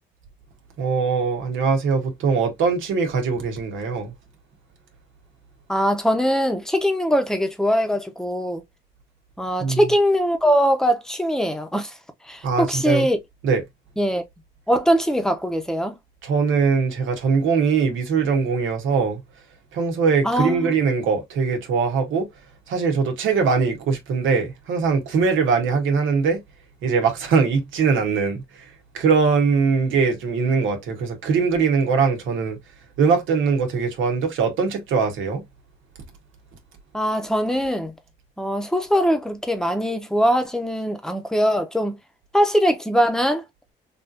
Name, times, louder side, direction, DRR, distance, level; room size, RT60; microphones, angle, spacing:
voice 1, 0.8-4.1 9.6-9.8 12.4-13.1 13.4-13.6 16.2-19.2 19.7-22.3 22.7-26.4 26.8-28.4 28.9-32.6 33.0-35.4, right 5 dB, 80° right, 1.1 m, -21 dB
voice 2, 5.7-8.6 9.4-12.0 12.3-13.2 14.0-14.2 14.7-16.0 20.2-20.7 36.9-37.9 38.4-42.0 42.3-43.4, equal, 5° left, 0.9 m, -21 dB
3.6 x 2.6 x 2.6 m
cardioid pair, 90°, 20 cm